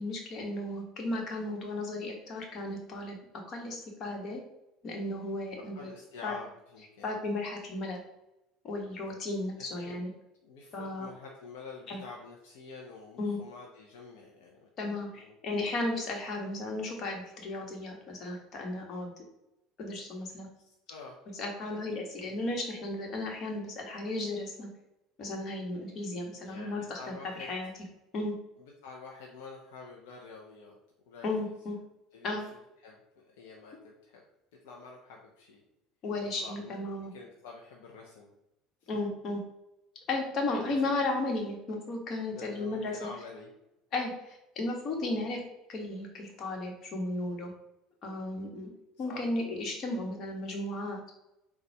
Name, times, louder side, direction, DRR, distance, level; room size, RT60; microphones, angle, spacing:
voice 1, 0.0-3.2 3.5-4.4 4.8-5.9 6.2-6.3 7.0-8.0 8.6-10.1 10.7-11.1 11.9-12.0 13.2-13.4 14.8-19.1 19.8-20.5 21.3-24.7 25.2-27.0 27.4-27.7 28.1-28.3 31.2-31.8 32.2-32.4 36.0-37.1 38.9-39.4 40.1-43.1 43.9-45.4 45.7-47.5 48.0-48.7 49.0-51.0, left 2 dB, 50° left, 1 dB, 1.2 m, -34 dB
voice 2, 5.7-7.1 9.7-10.0 10.4-15.4 20.5-21.2 21.7-22.6 25.9-26.1 26.4-27.7 28.6-30.8 31.1-31.5 32.1-32.5 32.8-34.2 34.6-35.6 36.4-36.7 37.1-38.3 38.8-38.9 40.7-41.2 42.3-43.5 49.1-49.2, left 4 dB, 80° left, -1 dB, 0.6 m, -48 dB
4.0 x 2.3 x 4.6 m, 0.90 s
hypercardioid pair, 75°, 0 cm